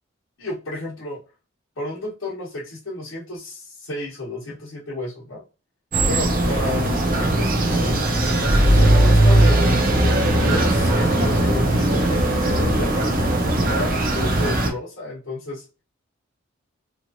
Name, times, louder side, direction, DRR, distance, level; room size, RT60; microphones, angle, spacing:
voice 1, 0.4-1.2 1.8-5.4 6.1-9.7 10.4-13.3 13.7-15.6, left 2 dB, 85° left, -6 dB, 1.0 m, -32 dB
sound 1, 5.9-14.7, right 1 dB, 45° right, 0.6 m, -18 dB
3.1 x 2.4 x 2.6 m, 0.31 s
head